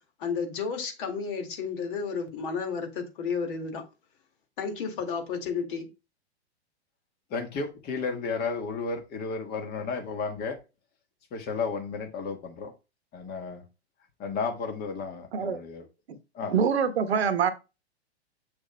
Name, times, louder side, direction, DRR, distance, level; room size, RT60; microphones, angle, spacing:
voice 1, 0.2-3.8 4.6-5.9, left 5 dB, 50° left, 2.1 m, -32 dB
voice 2, 7.3-10.6 11.3-12.7 13.1-13.6 14.2-15.8 16.3-16.5, left 4 dB, 30° left, 1.5 m, -33 dB
voice 3, 16.5-17.5, right 6 dB, 70° right, 1.1 m, -24 dB
7.1 x 6.8 x 2.2 m
hypercardioid pair, 110°, 33 cm